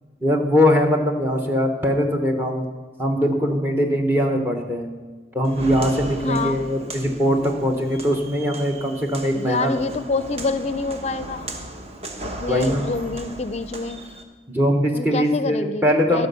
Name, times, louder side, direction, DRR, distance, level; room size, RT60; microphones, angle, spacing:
voice 1, 0.2-2.7 3.0-4.9 5.3-9.8 12.5-12.9 14.5-16.3, equal, 10° right, 3 dB, 0.9 m, -21 dB
Walk footsteps, 5.4-14.2, right 1 dB, 35° right, 1.1 m, -36 dB
voice 2, 6.2-6.6 9.3-11.5 12.2-14.0 14.9-16.3, left 3 dB, 35° left, 12 dB, 0.5 m, -27 dB
15.5 x 5.3 x 6.9 m, 1.4 s
head